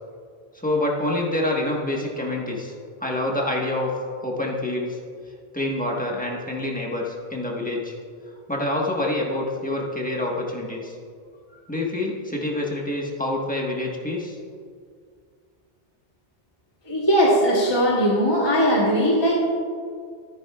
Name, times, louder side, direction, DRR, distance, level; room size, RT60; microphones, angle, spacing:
voice 1, 0.5-2.7 3.0-3.9 4.2-5.0 5.5-7.9 8.5-10.9 11.7-14.4, left 1 dB, 10° left, -2 dB, 1.3 m, -26 dB
voice 2, 16.9-19.4, equal, 25° left, -4 dB, 1.2 m, -19 dB
13.0 x 10.5 x 2.4 m, 2.1 s
omnidirectional pair, 1.1 m